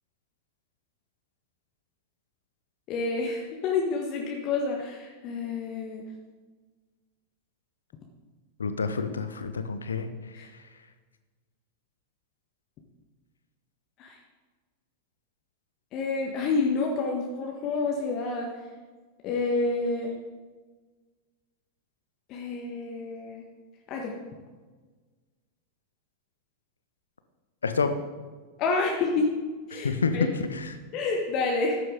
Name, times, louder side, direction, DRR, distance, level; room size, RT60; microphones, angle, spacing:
voice 1, 2.9-6.0 10.3-10.5 14.0-14.2 15.9-18.5 19.2-20.1 22.3-23.4 23.9-24.1 28.6-29.3 29.7-30.3 30.9-31.8, left 3 dB, 35° left, 0 dB, 1.5 m, -28 dB
voice 2, 8.6-10.1 10.4-10.5 27.6-28.0 29.7-30.8, left 4 dB, 70° left, 10 dB, 1.0 m, -28 dB
14.0 x 11.0 x 3.8 m, 1.4 s
figure-of-eight pair, 90°, 0 cm